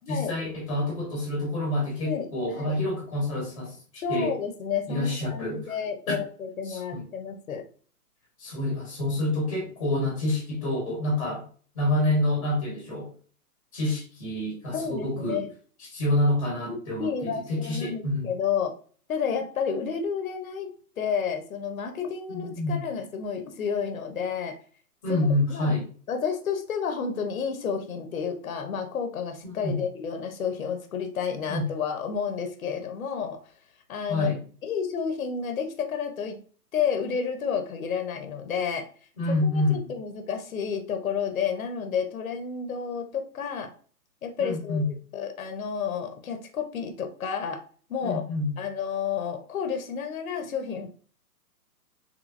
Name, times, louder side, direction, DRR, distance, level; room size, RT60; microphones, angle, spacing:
voice 1, 0.1-4.4 4.9-5.7 6.1-6.2 6.6-7.0 8.4-11.5 11.7-13.1 13.7-15.4 15.8-18.3 22.3-22.8 25.0-25.9 29.4-29.8 31.5-31.7 34.1-34.4 39.2-39.9 44.4-44.9 48.0-48.5, left 1 dB, 20° left, -2 dB, 0.9 m, -28 dB
voice 2, 2.0-2.8 4.0-7.6 14.7-15.5 17.0-18.7 19.1-20.7 21.0-24.6 25.1-25.8 26.1-33.4 33.9-34.4 34.6-36.4 36.7-38.9 39.5-43.7 44.2-44.8 45.1-47.6 47.9-48.2 48.6-50.9, left 6 dB, 60° left, 6 dB, 0.8 m, -30 dB
3.2 x 3.2 x 2.5 m, 0.42 s
hypercardioid pair, 175°, 48 cm